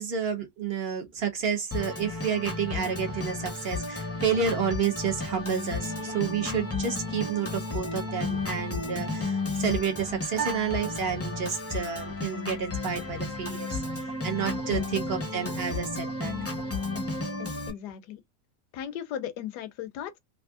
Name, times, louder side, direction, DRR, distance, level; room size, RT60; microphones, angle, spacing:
voice 1, 0.0-13.8 14.2-16.3, right 7 dB, 55° right, 0.7 m, -30 dB
Organ, 1.7-17.7, left 3 dB, 20° left, 0.3 m, -33 dB
sound 1, 10.3-11.8, right 8 dB, 80° right, 1.3 m, -37 dB
voice 2, 17.4-18.2 18.7-20.2, left 10 dB, 90° left, 1.2 m, -37 dB
3.4 x 2.7 x 2.3 m
omnidirectional pair, 1.7 m